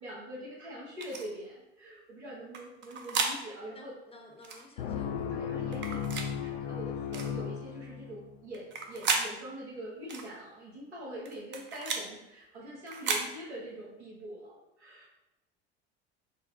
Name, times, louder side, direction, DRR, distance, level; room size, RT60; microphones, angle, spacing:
voice 1, 0.0-3.9 5.3-6.1 6.3-15.1, right 1 dB, 85° right, -5 dB, 1.2 m, -44 dB
sound 1, 1.0-1.2 2.5-3.4 4.4-4.6 5.7-6.3 7.1-7.3 8.5-9.3 10.1-10.3 11.3-12.1 12.9-13.3, right 4 dB, 35° right, 0.6 m, -33 dB
voice 2, 3.7-5.3, left 2 dB, 20° left, 0 dB, 0.7 m, -53 dB
sound 2, 4.8-8.4, left 8 dB, 75° left, 0.5 m, -35 dB
3.9 x 2.1 x 3.6 m, 0.92 s
hypercardioid pair, 70°, 32 cm